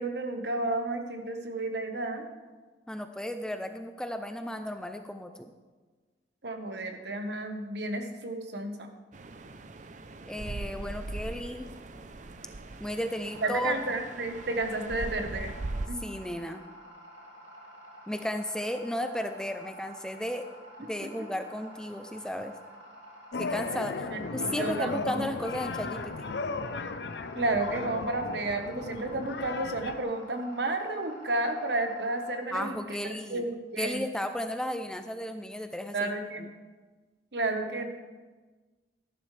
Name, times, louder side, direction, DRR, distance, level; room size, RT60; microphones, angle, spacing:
voice 1, 0.0-2.2 6.4-8.9 13.4-15.5 15.9-16.0 24.1-25.0 27.3-33.0 33.3-34.1 35.9-36.5 37.3-37.9, right 2 dB, 65° right, 5 dB, 1.2 m, -32 dB
voice 2, 2.9-5.5 10.3-11.7 12.8-13.7 16.0-16.6 18.1-20.5 20.8-22.5 23.4-24.1 24.3-26.3 32.5-33.4 33.8-36.1 36.4-36.5, left 1 dB, 5° left, 7 dB, 0.4 m, -34 dB
sound 1, 9.1-15.9, right 2 dB, 45° right, 0.6 m, -40 dB
sound 2, 13.2-32.4, equal, 90° right, 2.9 m, -50 dB
sound 3, 23.3-30.0, left 4 dB, 70° left, 0.6 m, -36 dB
13.0 x 11.5 x 3.3 m, 1.4 s
head